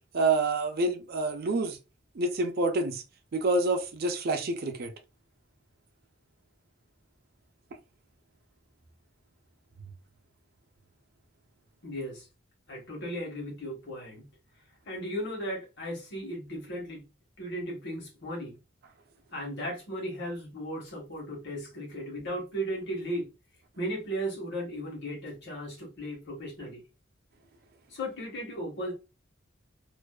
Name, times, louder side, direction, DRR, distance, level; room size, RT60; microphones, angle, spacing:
voice 1, 0.1-1.8 2.2-3.0 3.3-4.9, right 2 dB, 55° right, 0.5 m, -27 dB
voice 2, 11.8-12.2 12.7-14.2 14.9-17.0 17.4-18.6 19.3-23.3 23.8-26.8 27.9-28.9, equal, 60° left, 1.1 m, -36 dB
2.5 x 2.2 x 2.2 m
head